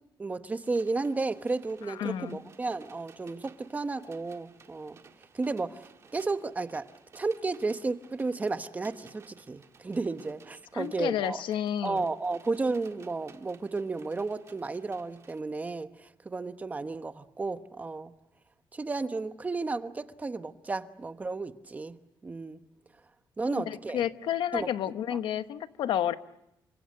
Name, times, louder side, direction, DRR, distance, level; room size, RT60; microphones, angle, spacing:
voice 1, 0.2-5.0 5.3-6.9 7.1-11.4 11.8-18.1 18.7-22.0 22.2-22.6 23.4-24.0 24.5-24.7, right 3 dB, 20° right, 10 dB, 1.0 m, -33 dB
sound 1, 0.6-15.4, right 5 dB, 35° right, 1.8 m, -57 dB
voice 2, 2.0-2.4 10.7-12.0 23.5-26.1, left 10 dB, 75° left, 11 dB, 1.1 m, -31 dB
29.0 x 25.5 x 6.5 m, 0.85 s
cardioid pair, 155°, 8 cm